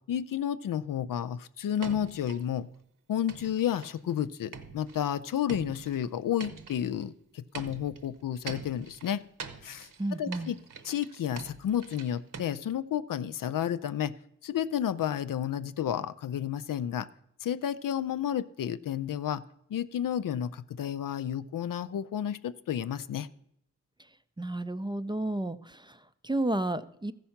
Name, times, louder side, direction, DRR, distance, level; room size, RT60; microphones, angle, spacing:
voice 1, 0.1-2.7 3.1-9.2 9.6-9.9 10.2-10.6 10.8-14.1 14.4-17.1 17.4-19.4 19.7-23.3, left 10 dB, 70° left, 14 dB, 0.5 m, -31 dB
sound 1, 1.8-2.5 3.3-4.1 4.5-7.0 7.5-12.4, right 5 dB, 65° right, 1.0 m, -44 dB
voice 2, 10.0-10.6 24.4-27.1, right 1 dB, 15° right, 12 dB, 0.4 m, -32 dB
14.0 x 5.4 x 5.8 m, 0.72 s
cardioid pair, 55°, 34 cm